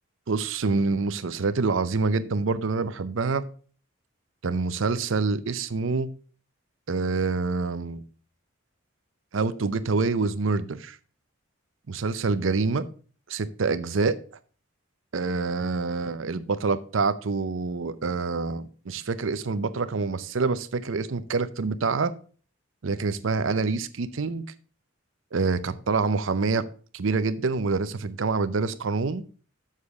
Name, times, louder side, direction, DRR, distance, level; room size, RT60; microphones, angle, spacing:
voice 1, 0.3-3.5 4.4-6.1 6.9-8.0 9.3-11.0 11.9-12.9 13.3-14.2 15.1-22.1 22.8-24.4 25.3-26.7 26.9-29.2, right 4 dB, 75° right, 15 dB, 0.6 m, -26 dB
7.5 x 6.6 x 4.7 m, 0.40 s
head